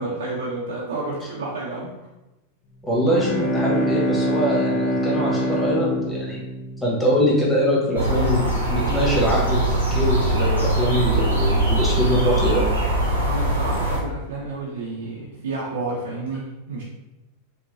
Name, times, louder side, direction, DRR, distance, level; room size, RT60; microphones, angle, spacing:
voice 1, 0.0-1.9 13.2-16.8, right 2 dB, 70° right, -5 dB, 0.8 m, -30 dB
voice 2, 2.8-6.4 6.8-12.6, equal, 15° left, -5 dB, 1.5 m, -23 dB
Bowed string instrument, 2.9-7.6, equal, 35° left, 0.8 m, -25 dB
sound 1, 7.9-14.0, right 1 dB, 90° right, 1.2 m, -21 dB
5.6 x 2.6 x 2.8 m, 1.0 s
figure-of-eight pair, 90°, 0 cm